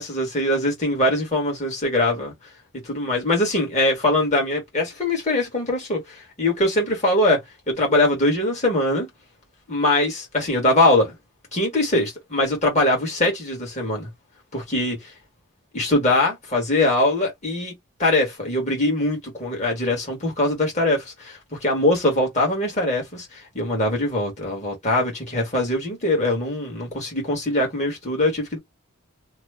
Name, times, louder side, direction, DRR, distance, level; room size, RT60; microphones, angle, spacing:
voice 1, 0.0-2.3 2.8-7.4 7.7-9.1 9.7-11.1 11.5-14.1 14.5-15.0 15.7-17.7 18.0-28.6, left 1 dB, 35° left, 1.4 m, -22 dB
3.0 x 2.0 x 3.3 m
head